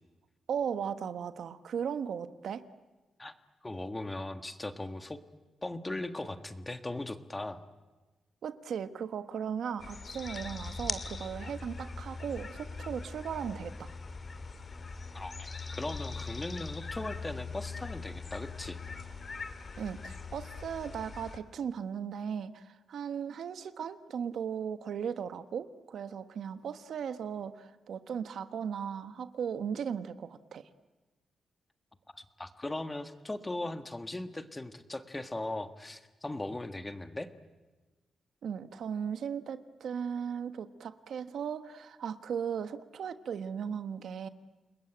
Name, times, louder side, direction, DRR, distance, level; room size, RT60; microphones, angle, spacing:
voice 1, 0.5-2.6 8.4-13.9 19.8-30.7 38.4-44.3, right 7 dB, 70° right, 11 dB, 1.3 m, -37 dB
voice 2, 3.6-5.2 5.6-7.6 15.1-18.8 32.1-37.3, left 2 dB, 15° left, 9 dB, 1.6 m, -38 dB
sound 1, 9.8-21.4, left 4 dB, 35° left, 2.2 m, -41 dB
29.0 x 21.5 x 9.0 m, 1.2 s
wide cardioid pair, 130°, 0 cm